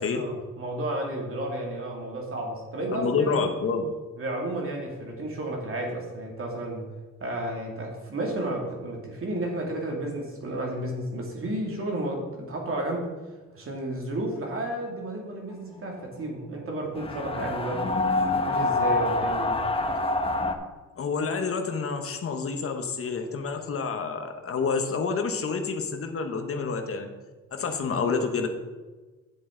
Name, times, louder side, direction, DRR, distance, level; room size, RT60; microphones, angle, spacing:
voice 1, 0.0-3.4 4.2-6.9 7.2-13.1 13.5-18.0 18.5-19.6, right 1 dB, 45° right, 0 dB, 2.6 m, -32 dB
voice 2, 2.9-3.9 21.0-27.1 27.5-28.5, left 5 dB, 50° left, 6 dB, 1.1 m, -28 dB
sound 1, 17.0-20.5, left 2 dB, 20° left, 0.9 m, -26 dB
10.5 x 7.6 x 3.9 m, 1.3 s
cardioid pair, 90°, 30 cm